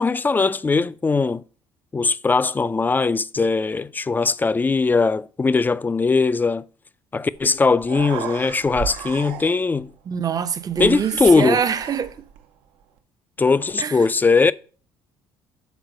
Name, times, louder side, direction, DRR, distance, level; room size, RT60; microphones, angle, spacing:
voice 1, 0.0-1.4 1.9-6.6 7.1-9.9 10.8-11.6 13.4-14.5, left 4 dB, 20° left, 0.3 m, -20 dB
Human voice, 7.3-7.5 7.7-9.8 10.7-12.4, right 7 dB, 75° right, 0.7 m, -34 dB
voice 2, 10.1-12.1 13.8-14.0, right 7 dB, 40° right, 0.6 m, -24 dB
6.2 x 4.0 x 5.2 m
hypercardioid pair, 65°, 10 cm